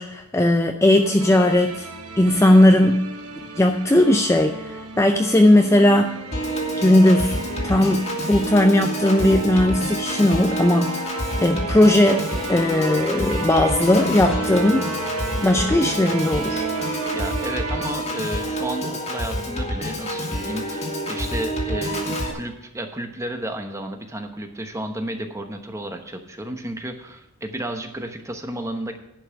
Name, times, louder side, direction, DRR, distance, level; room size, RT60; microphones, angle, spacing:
voice 1, 0.0-1.9 2.2-3.1 3.6-6.2 6.8-7.4 7.6-11.1 11.4-14.9 15.4-16.7, left 1 dB, 10° left, 5 dB, 0.4 m, -18 dB
sound 1, 1.0-17.9, right 3 dB, 75° right, 1.2 m, -34 dB
Piano / Organ, 6.3-22.3, equal, 30° left, 1.8 m, -28 dB
voice 2, 17.1-29.0, right 1 dB, 15° right, 5 dB, 0.9 m, -32 dB
10.5 x 5.5 x 7.4 m, 0.91 s
head